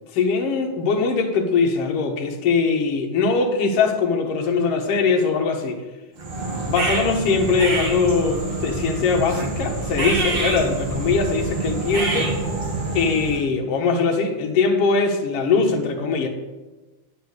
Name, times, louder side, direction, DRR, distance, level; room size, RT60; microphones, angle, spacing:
voice 1, 0.1-5.8 6.6-12.3 12.9-16.3, left 4 dB, 55° left, 1 dB, 2.0 m, -21 dB
sound 1, 6.2-13.4, right 2 dB, 55° right, 4.0 m, -26 dB
9.1 x 8.2 x 6.5 m, 1.1 s
omnidirectional pair, 3.6 m